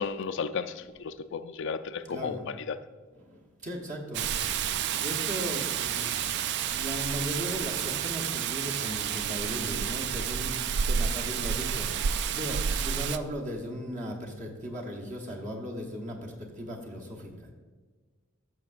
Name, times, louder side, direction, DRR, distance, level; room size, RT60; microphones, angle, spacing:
voice 1, 0.0-2.8, left 5 dB, 60° left, 12 dB, 0.4 m, -34 dB
voice 2, 1.9-2.5 3.2-4.3 4.6-6.4 6.7-17.5, equal, 35° right, 0 dB, 1.1 m, -37 dB
Rain, 4.1-13.2, right 8 dB, 55° right, 0.3 m, -30 dB
13.5 x 6.4 x 2.5 m, 1.4 s
head